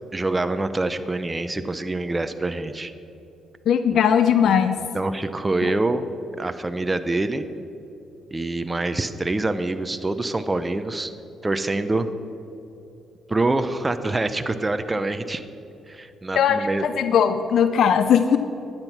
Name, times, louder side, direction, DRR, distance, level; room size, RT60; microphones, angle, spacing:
voice 1, 0.1-2.9 4.9-6.1 6.4-7.5 8.3-11.1 11.4-12.1 13.3-15.4 15.9-16.9, right 2 dB, 20° right, 9 dB, 0.7 m, -25 dB
voice 2, 3.7-4.8 5.6-5.7 16.4-18.4, left 8 dB, 65° left, 10 dB, 0.5 m, -19 dB
12.0 x 8.9 x 6.0 m, 2.9 s
cardioid pair, 90°, 0 cm